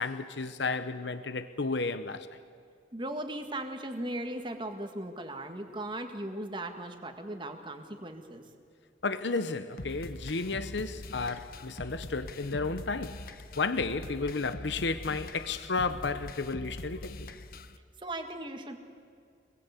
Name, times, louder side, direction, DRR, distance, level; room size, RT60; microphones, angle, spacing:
voice 1, 0.0-2.4 9.0-13.2 13.6-17.3, left 4 dB, 75° left, 0.9 m, -32 dB
voice 2, 2.9-8.4 18.0-18.8, right 1 dB, 25° right, 1.9 m, -38 dB
sound 1, 9.8-17.8, left 1 dB, 50° left, 1.0 m, -43 dB
25.5 x 21.0 x 8.3 m
head